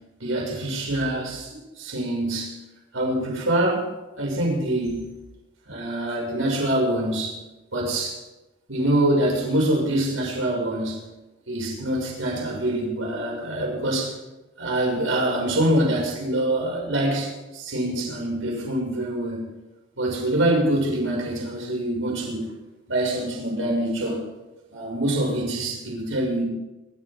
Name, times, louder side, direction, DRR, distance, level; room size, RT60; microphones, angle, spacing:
voice 1, 0.2-2.6 2.9-3.9 4.2-5.1 5.7-7.4 7.7-8.2 8.7-11.1 11.5-14.2 14.6-19.4 20.0-22.5 22.9-24.2 24.7-26.4, right 1 dB, 85° right, -2 dB, 6.8 m, -25 dB
26.0 x 14.5 x 3.9 m, 1.0 s
head